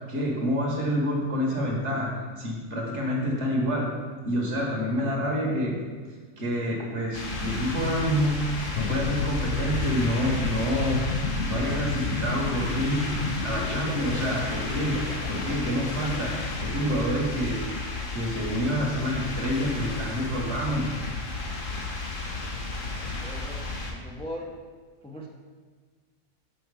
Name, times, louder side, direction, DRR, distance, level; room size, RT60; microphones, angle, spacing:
voice 1, 0.1-3.9 4.2-5.8 6.4-8.4 8.7-11.0 11.5-13.1 13.4-15.0 15.3-16.4 16.6-17.6 18.1-21.0, equal, 60° right, -1 dB, 1.6 m, -27 dB
sound 1, 7.1-23.9, left 3 dB, 45° left, 1.0 m, -33 dB
sound 2, 8.7-17.5, left 4 dB, 80° left, 1.1 m, -33 dB
voice 2, 23.0-24.5 25.0-25.3, equal, 5° left, -2 dB, 0.5 m, -40 dB
6.4 x 4.6 x 4.7 m, 1.5 s
omnidirectional pair, 1.3 m